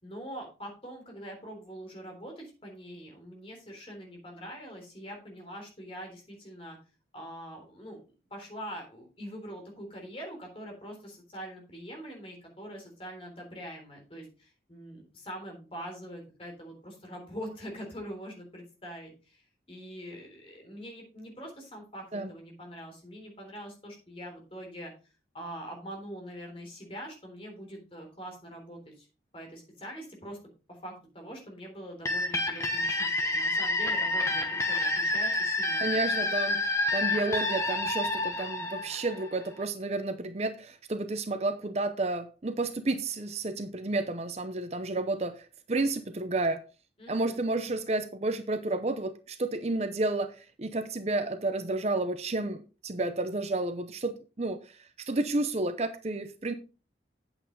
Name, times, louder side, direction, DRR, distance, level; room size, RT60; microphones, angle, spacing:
voice 1, 0.0-6.8 7.1-8.0 8.3-19.4 19.7-24.9 25.3-29.1 29.3-30.4 30.8-36.0 47.0-47.4, equal, 30° left, 3.6 m, -43 dB
sound 1, 32.0-39.6, left 2 dB, 15° left, 1.0 m, -29 dB
voice 2, 35.8-46.6 47.1-56.5, right 2 dB, 35° right, 0.7 m, -31 dB
9.0 x 7.9 x 3.8 m
head